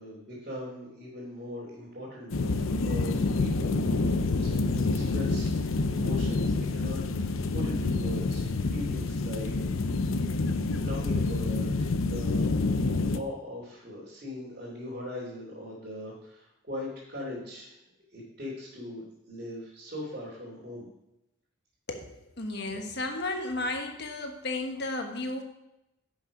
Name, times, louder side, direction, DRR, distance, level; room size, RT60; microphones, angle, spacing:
voice 1, 0.0-9.5 10.7-12.4 13.1-17.7 18.1-20.9, left 1 dB, 50° right, -8 dB, 3.0 m, -40 dB
sound 1, 2.3-13.2, left 3 dB, 90° left, 0.6 m, -28 dB
voice 2, 21.9-25.4, left 2 dB, 55° left, 4 dB, 1.4 m, -33 dB
10.5 x 6.4 x 4.9 m, 0.88 s
head